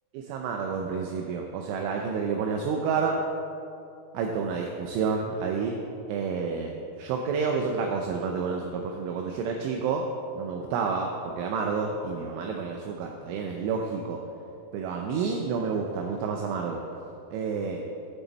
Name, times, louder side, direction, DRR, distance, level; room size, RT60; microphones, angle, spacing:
voice 1, 0.1-3.2 4.1-5.8 6.1-10.0 10.4-14.2 14.7-16.8 17.3-17.8, right 5 dB, 80° right, 1 dB, 3.0 m, -29 dB
17.5 x 7.4 x 4.1 m, 2.7 s
omnidirectional pair, 5.7 m